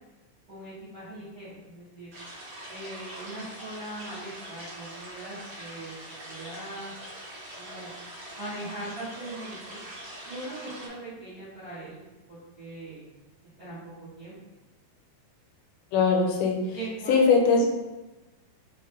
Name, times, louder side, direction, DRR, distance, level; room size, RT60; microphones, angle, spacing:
voice 1, 0.5-2.1 2.7-5.9 6.2-6.9 7.5-7.9 8.4-9.8 10.2-13.0 13.6-14.4 16.7-17.1, right 2 dB, 85° right, -13 dB, 0.8 m, -40 dB
sound 1, 2.1-10.9, right 1 dB, 65° right, 1.2 m, -43 dB
voice 2, 15.9-16.6 17.1-17.7, left 4 dB, 85° left, 1 dB, 2.5 m, -20 dB
6.2 x 2.1 x 3.1 m, 1.1 s
omnidirectional pair, 4.3 m